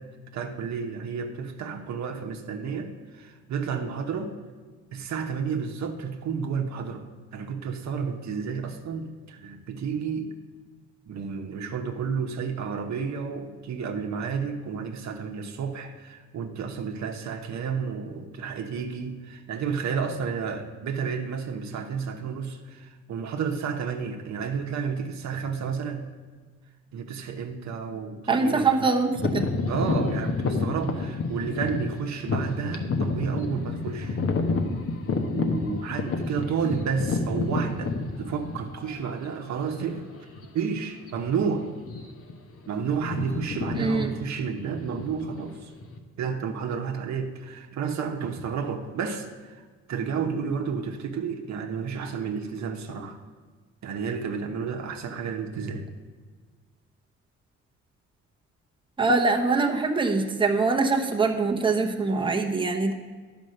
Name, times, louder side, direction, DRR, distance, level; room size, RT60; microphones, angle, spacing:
voice 1, 0.3-4.4 4.9-7.1 7.3-10.3 11.1-26.1 26.9-28.9 29.7-34.2 35.3-40.3 40.5-41.7 42.7-45.7 46.2-49.6 49.9-53.2 53.8-55.8, right 6 dB, 65° right, 4 dB, 1.0 m, -31 dB
voice 2, 28.3-29.5 43.7-44.1 59.0-62.9, right 3 dB, 15° right, 1 dB, 1.0 m, -23 dB
sound 1, 29.2-38.9 39.6-39.7 40.3-40.6 40.9-41.1 41.7-42.3 42.6-46.0, left 3 dB, 50° left, 1.1 m, -29 dB
10.5 x 5.2 x 6.5 m, 1.5 s
cardioid pair, 90°, 30 cm